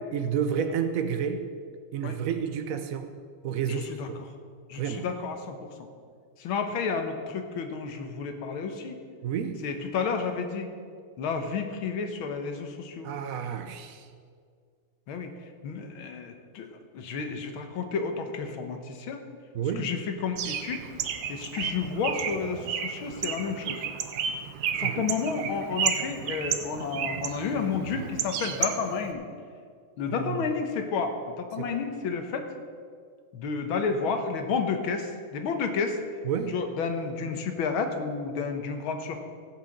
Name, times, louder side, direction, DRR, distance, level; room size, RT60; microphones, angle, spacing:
voice 1, 0.1-1.4 1.9-3.1 3.4-3.9 4.8-5.1 9.2-9.6 13.0-14.0 19.5-19.9 24.8-25.1 28.0-28.1 30.1-30.5 31.7-31.8 36.2-36.6, right 7 dB, 85° right, 8 dB, 0.7 m, -30 dB
voice 2, 3.7-4.1 4.7-5.7 6.4-9.0 9.6-10.7 11.2-13.1 15.1-15.3 15.6-19.2 19.8-20.8 21.3-23.8 24.8-29.3 30.0-32.5 33.3-36.0 36.5-39.2, left 5 dB, 70° left, 6 dB, 1.8 m, -31 dB
Bird, 20.4-29.1, right 8 dB, 65° right, 1.1 m, -32 dB
15.5 x 5.9 x 7.2 m, 2.1 s
omnidirectional pair, 2.4 m